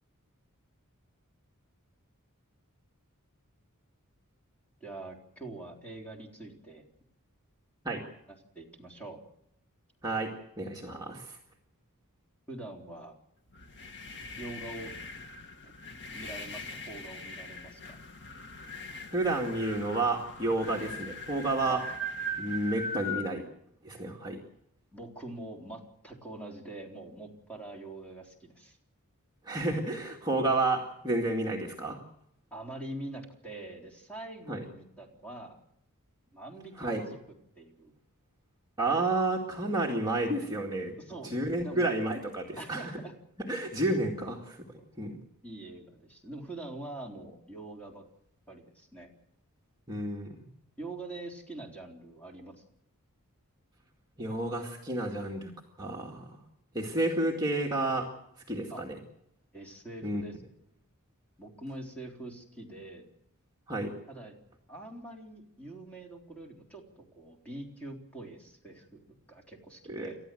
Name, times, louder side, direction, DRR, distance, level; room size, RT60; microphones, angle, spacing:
voice 1, 4.8-6.8 8.5-9.2 12.5-13.1 14.4-14.9 15.6-15.7 16.1-18.0 21.7-21.8 24.9-28.8 32.5-35.6 36.3-37.2 37.6-37.9 41.0-41.9 42.6-43.1 43.9-44.0 45.4-48.0 48.5-49.1 50.8-52.6 58.7-58.8 59.5-60.4 61.4-63.1 64.1-64.3 64.7-69.0 69.3-70.2, right 2 dB, 5° left, 0 dB, 3.9 m, -44 dB
voice 2, 10.0-11.4 19.1-21.8 22.4-23.4 23.8-24.4 29.4-32.0 34.5-34.7 36.8-37.0 38.8-41.0 41.2-42.9 43.5-44.6 45.0-45.2 49.9-50.5 54.2-55.5 55.8-56.4 56.7-58.1 58.5-59.0 60.0-60.2 63.7-63.9 69.9-70.1, right 2 dB, 20° right, -2 dB, 2.1 m, -31 dB
sound 1, 13.5-23.3, left 1 dB, 55° left, 2.1 m, -40 dB
30.0 x 13.0 x 7.8 m, 0.75 s
head